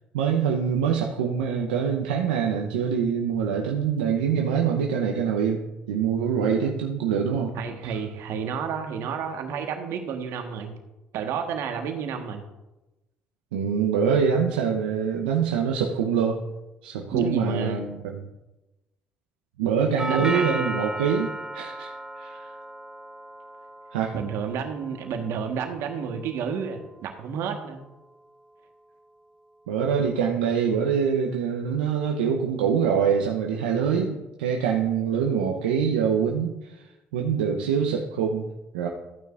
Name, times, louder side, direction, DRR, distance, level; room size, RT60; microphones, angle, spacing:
voice 1, 0.1-7.6 7.8-8.0 13.5-16.4 16.8-18.2 19.6-22.6 23.9-24.1 29.7-36.9 37.1-38.5 38.7-38.9, right 7 dB, 85° right, 1 dB, 0.8 m, -25 dB
voice 2, 7.5-10.7 11.1-12.4 17.1-17.8 20.1-20.8 24.1-27.8, right 6 dB, 70° right, 4 dB, 1.4 m, -30 dB
Doorbell, 20.0-28.0, right 1 dB, 15° right, 0.7 m, -36 dB
14.5 x 9.2 x 2.6 m, 1.0 s
hypercardioid pair, 55°, 5 cm